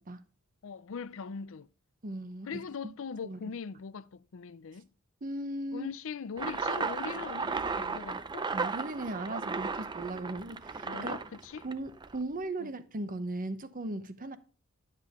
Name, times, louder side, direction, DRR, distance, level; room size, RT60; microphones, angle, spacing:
voice 1, 0.6-1.7 2.5-4.9 5.7-8.5 10.8-11.7 12.6-12.7, left 5 dB, 65° left, 0.5 m, -41 dB
voice 2, 2.0-2.9 3.2-3.4 5.2-5.9 8.5-11.2 11.6-14.4, right 2 dB, 40° right, 0.9 m, -37 dB
sound 1, 6.4-12.2, right 4 dB, 20° right, 0.4 m, -35 dB
11.0 x 7.5 x 3.6 m
head